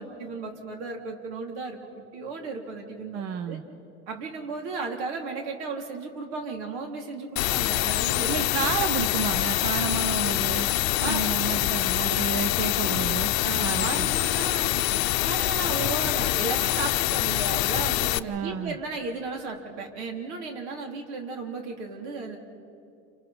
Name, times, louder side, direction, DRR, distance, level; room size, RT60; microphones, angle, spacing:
voice 1, 0.0-3.6 4.1-8.7 11.0-11.2 13.4-14.8 15.2-22.4, right 4 dB, 85° right, 2 dB, 3.6 m, -35 dB
voice 2, 3.1-3.6 8.3-10.7 11.0-13.3 13.6-14.2 18.3-18.8, right 7 dB, 50° right, 9 dB, 0.9 m, -31 dB
sound 1, 7.4-18.2, left 18 dB, 60° left, 0.7 m, -25 dB
29.0 x 27.0 x 4.4 m, 2.5 s
supercardioid pair, 145°, 33 cm